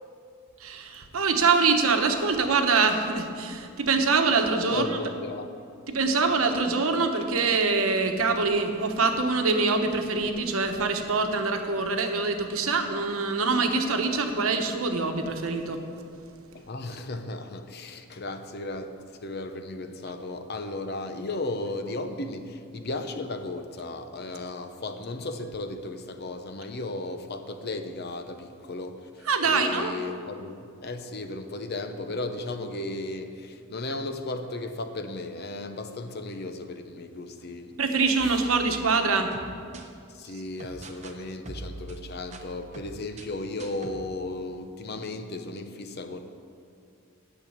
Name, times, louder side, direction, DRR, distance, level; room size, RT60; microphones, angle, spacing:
voice 1, 0.6-4.9 5.9-15.8 29.3-29.9 37.8-39.3, right 4 dB, 80° right, 5 dB, 1.1 m, -24 dB
voice 2, 4.7-5.5 16.5-37.7 38.2-38.4 40.1-46.2, left 2 dB, 50° left, 7 dB, 0.7 m, -35 dB
sound 1, 38.2-39.9 40.6-41.2 41.5-44.0, right 2 dB, 35° right, 0.8 m, -44 dB
9.4 x 6.9 x 8.6 m, 2.4 s
head